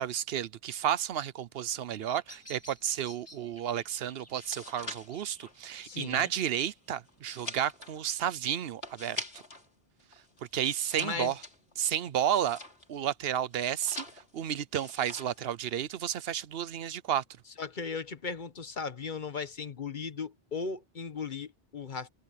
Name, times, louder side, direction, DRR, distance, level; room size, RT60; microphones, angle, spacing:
voice 1, 0.0-9.2 10.5-11.4 11.8-12.6 12.9-14.1 14.3-17.2, right 10 dB, 75° right, 0.9 m, -32 dB
Bird vocalization bird call bird song, 1.7-7.7, left 1 dB, 15° left, 2.0 m, -56 dB
sound 1, 4.2-9.7 10.0-13.0 13.5-14.4 14.7-15.4 15.7-16.1, left 2 dB, 90° left, 4.5 m, -44 dB
voice 2, 5.8-6.3 11.0-11.3 17.6-22.1, left 5 dB, 50° left, 1.2 m, -37 dB
omnidirectional pair, 1.0 m